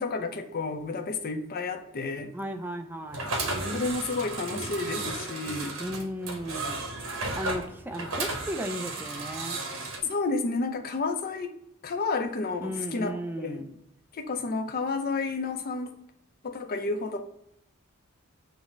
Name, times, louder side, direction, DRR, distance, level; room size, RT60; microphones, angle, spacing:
voice 1, 0.0-2.3 3.7-5.8 10.0-11.5 11.8-13.1 13.4-13.6 14.1-16.0 16.4-17.2, left 3 dB, 45° left, 0.5 m, -31 dB
voice 2, 2.3-3.3 5.8-6.8 7.3-9.6 12.6-13.7, equal, 10° right, 0.3 m, -35 dB
sound 1, 3.1-10.0, right 2 dB, 85° right, 0.9 m, -34 dB
Laughter, 3.3-5.1 5.4-5.6 5.9-6.1 6.3-7.9, right 1 dB, 60° right, 0.9 m, -41 dB
4.0 x 2.0 x 4.4 m
head